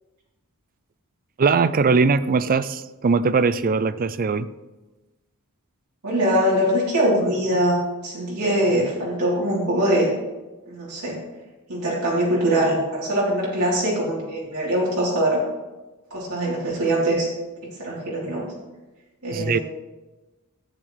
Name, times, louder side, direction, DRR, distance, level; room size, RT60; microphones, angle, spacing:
voice 1, 1.4-4.5 19.3-19.6, right 4 dB, 40° right, 14 dB, 0.4 m, -20 dB
voice 2, 6.0-10.1 10.7-11.2 11.7-15.4 16.1-17.3 17.8-18.5 19.2-19.6, right 1 dB, 85° right, -6 dB, 3.9 m, -22 dB
14.0 x 8.5 x 3.4 m, 1.1 s
head